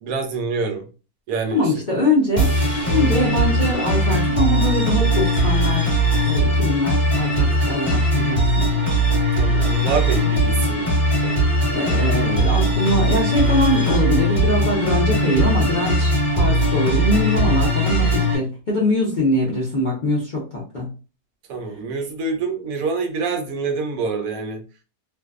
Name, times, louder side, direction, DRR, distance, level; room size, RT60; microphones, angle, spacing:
voice 1, 0.0-0.9 1.3-1.7 2.9-3.2 9.3-11.5 21.5-24.6, right 4 dB, 70° right, 4 dB, 1.0 m, -26 dB
voice 2, 1.5-2.5 2.9-5.9 6.2-8.7 11.5-20.9, left 1 dB, 45° left, -5 dB, 0.6 m, -22 dB
sound 1, 2.4-18.3, equal, 25° left, 1.0 m, -19 dB
2.6 x 2.1 x 2.4 m, 0.34 s
omnidirectional pair, 1.6 m